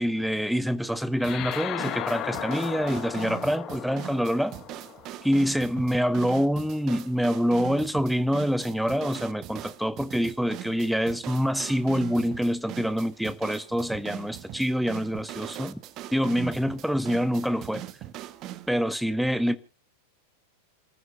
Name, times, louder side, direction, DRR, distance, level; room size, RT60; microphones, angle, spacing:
voice 1, 0.0-4.5 5.2-15.8 16.1-17.8 18.7-19.6, equal, ahead, 1.1 m, -26 dB
sound 1, 1.2-5.9, left 12 dB, 35° left, 1.2 m, -36 dB
sound 2, 1.2-18.7, right 14 dB, 35° right, 1.2 m, -41 dB
28.0 x 14.5 x 2.8 m
figure-of-eight pair, 90°, 0 cm